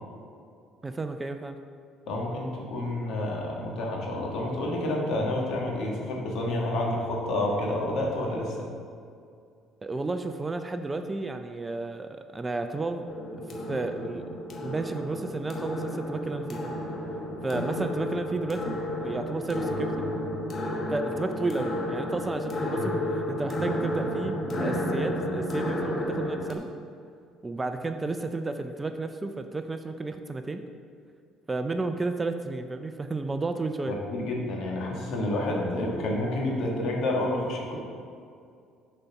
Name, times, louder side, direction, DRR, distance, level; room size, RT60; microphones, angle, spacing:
voice 1, 0.8-1.6 9.8-13.0 13.7-14.3 14.6-16.8 17.4-20.1 20.9-26.6 27.4-30.6 31.5-33.9, right 3 dB, 20° right, 8 dB, 0.4 m, -32 dB
voice 2, 2.1-8.7 22.7-22.9 33.9-37.8, left 1 dB, 65° left, -1 dB, 1.5 m, -29 dB
sound 1, 13.1-26.5, left 1 dB, 40° left, 1.1 m, -32 dB
6.8 x 4.1 x 5.7 m, 2.3 s
supercardioid pair, 85°, 0 cm